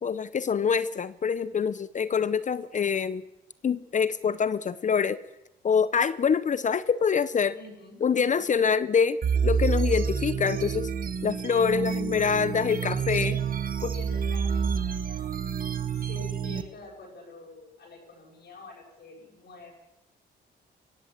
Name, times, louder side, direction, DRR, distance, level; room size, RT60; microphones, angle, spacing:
voice 1, 0.0-3.3 3.6-5.2 5.6-7.6 8.0-10.9 11.2-13.3 13.8-13.9, left 6 dB, 40° left, 16 dB, 0.7 m, -25 dB
voice 2, 7.5-8.4 11.5-12.7 13.0-13.4 13.9-15.3 15.9-19.7, left 3 dB, 55° left, -2 dB, 8.0 m, -47 dB
sound 1, 9.2-16.6, right 6 dB, 45° right, 1.3 m, -28 dB
24.5 x 15.5 x 7.4 m, 0.93 s
cardioid pair, 90°, 20 cm